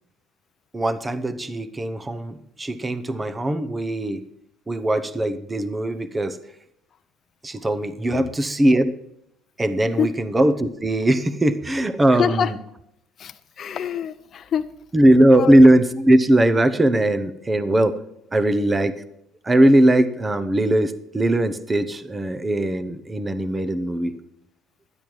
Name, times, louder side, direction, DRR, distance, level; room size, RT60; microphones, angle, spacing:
voice 1, 0.7-4.2 4.7-6.4 7.4-8.9 9.6-12.6 14.9-18.0 18.3-19.0 19.4-24.2, right 1 dB, 15° right, 12 dB, 0.8 m, -19 dB
voice 2, 12.1-12.5 13.2-14.7 15.3-15.6, left 8 dB, 40° left, 9 dB, 0.5 m, -25 dB
12.5 x 10.5 x 4.7 m, 0.81 s
cardioid pair, 130°, 0 cm